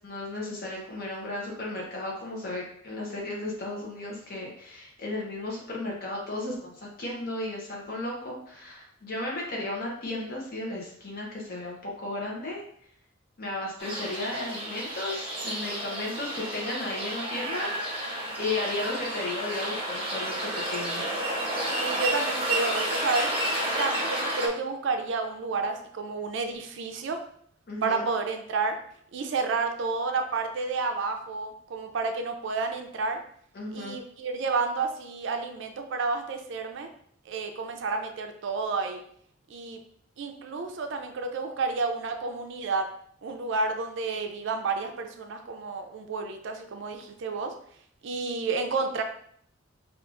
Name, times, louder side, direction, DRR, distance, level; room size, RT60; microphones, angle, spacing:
voice 1, 0.0-12.6 13.4-18.0 18.4-21.0 27.7-28.0 33.5-34.0, left 2 dB, 50° left, -3 dB, 0.8 m, -34 dB
sound 1, 13.8-24.5, right 1 dB, 30° right, 0.7 m, -31 dB
voice 2, 21.7-23.3 23.6-27.2 27.8-28.8 29.1-33.2 33.7-36.9 37.3-39.0 39.5-39.8 40.2-42.9 43.2-47.5 48.0-49.0, right 4 dB, 65° right, 6 dB, 0.4 m, -30 dB
4.6 x 2.4 x 2.5 m, 0.65 s
head